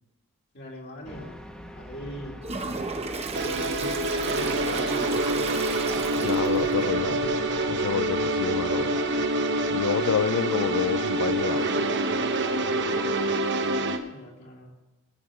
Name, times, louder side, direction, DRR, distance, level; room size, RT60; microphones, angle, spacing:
voice 1, 0.5-1.4 1.7-2.4 3.4-5.8 14.1-14.8, left 1 dB, 50° left, -2 dB, 2.3 m, -41 dB
sound 1, 1.0-13.1, equal, 5° left, 1.2 m, -43 dB
Toilet flush, 2.4-6.8, right 3 dB, 30° right, 1.0 m, -33 dB
sound 2, 3.3-14.0, right 2 dB, 55° right, 1.1 m, -26 dB
voice 2, 6.2-7.4 7.7-9.0 9.7-11.8, left 7 dB, 85° left, 14 dB, 0.4 m, -28 dB
19.0 x 8.2 x 4.9 m, 1.1 s
head